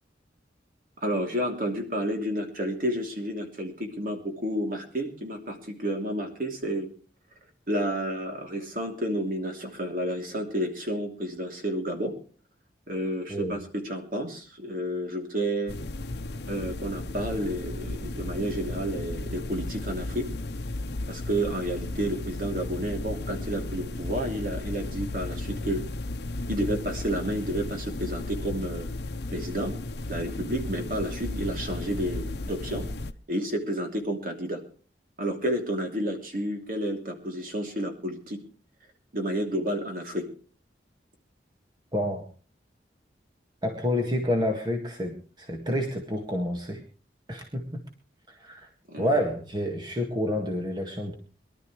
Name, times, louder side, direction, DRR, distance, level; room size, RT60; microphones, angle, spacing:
voice 1, 1.0-6.9 7.7-12.1 12.9-15.8 16.5-20.3 21.1-25.8 26.5-28.9 29.3-29.7 30.1-32.9 33.3-34.6 35.2-38.4 39.1-40.3 48.9-49.1, right 1 dB, 50° right, 3 dB, 3.0 m, -30 dB
sound 1, 15.7-33.1, left 2 dB, 65° left, 0.8 m, -34 dB
voice 2, 41.9-42.2 43.6-46.8 47.3-47.8 48.4-48.7 49.0-51.1, left 1 dB, 25° right, 3 dB, 1.8 m, -28 dB
23.0 x 12.0 x 3.2 m, 0.39 s
head